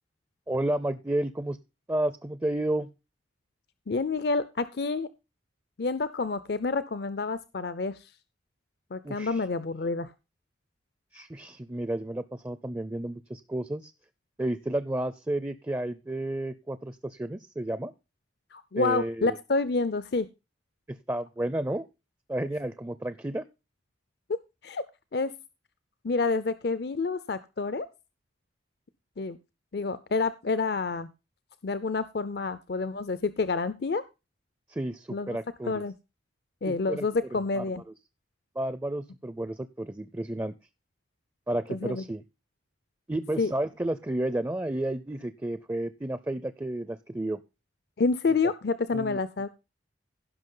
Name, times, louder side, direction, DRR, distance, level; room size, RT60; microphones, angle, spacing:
voice 1, 0.5-1.6 1.9-2.9 9.0-9.4 11.1-13.9 14.4-17.9 18.8-19.4 20.9-21.9 22.3-23.4 34.7-35.8 36.7-37.1 37.3-37.6 38.6-40.5 41.5-42.2 43.1-47.4 48.3-48.4 48.9-49.2, right 1 dB, 15° right, 14 dB, 0.4 m, -31 dB
voice 2, 3.9-5.1 5.8-8.0 8.9-10.1 18.5-20.3 24.3-24.8 25.1-25.3 26.0-27.9 29.2-29.4 29.7-31.1 31.6-34.0 35.1-35.4 35.7-35.9 36.6-37.8 41.7-42.0 43.4-43.5 48.0-49.5, left 4 dB, 55° left, 14 dB, 0.5 m, -28 dB
16.0 x 6.0 x 3.8 m, 0.27 s
head